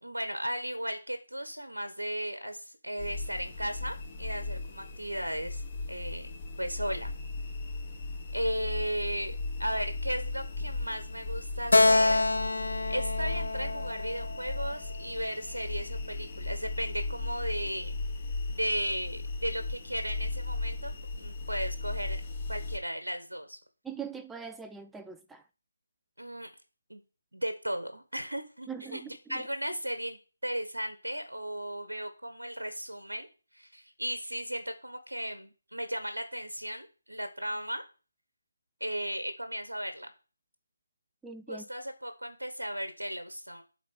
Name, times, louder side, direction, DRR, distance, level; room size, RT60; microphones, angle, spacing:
voice 1, 0.0-5.6 5.9-7.1 8.3-12.2 12.9-18.0 18.5-22.2 22.5-23.6 26.2-26.5 26.9-27.0 27.3-33.3 33.5-37.8 38.8-40.1 41.5-43.6, equal, 80° right, 1.5 m, -35 dB
sound 1, 3.0-22.8, left 3 dB, 25° left, 1.6 m, -37 dB
Keyboard (musical), 11.7-15.2, left 2 dB, 65° left, 0.9 m, -27 dB
voice 2, 23.8-25.4 28.7-29.4 41.2-41.7, right 6 dB, 5° right, 0.4 m, -42 dB
9.1 x 4.0 x 6.3 m
figure-of-eight pair, 155°, 0 cm